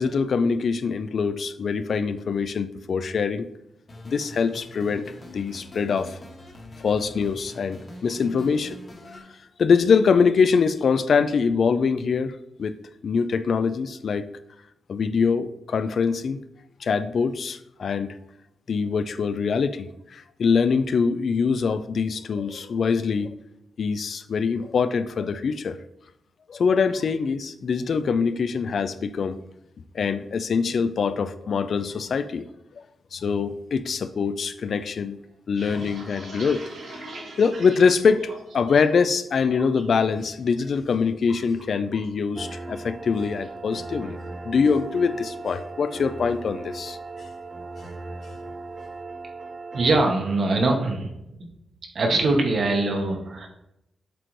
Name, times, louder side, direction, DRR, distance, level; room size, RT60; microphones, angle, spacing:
voice 1, 0.0-3.5 4.0-5.1 5.3-6.2 6.8-8.8 9.6-12.8 13.0-14.3 14.9-16.4 16.8-18.1 18.7-23.3 23.8-25.8 26.5-29.4 29.9-32.5 32.8-32.9 33.1-35.2 35.5-36.6 37.0-37.1 37.4-44.2 44.4-47.0, left 5 dB, 55° left, 12 dB, 0.3 m, -23 dB
sound 1, 3.9-9.2, left 1 dB, 30° left, 0.9 m, -44 dB
sound 2, 35.3-39.0 39.3-39.8 40.2-40.6 40.9-42.2 42.5-42.7 43.1-43.5, right 2 dB, 80° right, 2.1 m, -42 dB
sound 3, 42.3-50.0, right 3 dB, 25° right, 0.4 m, -37 dB
voice 2, 49.7-51.1 51.9-53.5, right 2 dB, 55° right, 3 dB, 1.1 m, -22 dB
7.6 x 3.9 x 3.1 m, 0.84 s
wide cardioid pair, 135°, 0 cm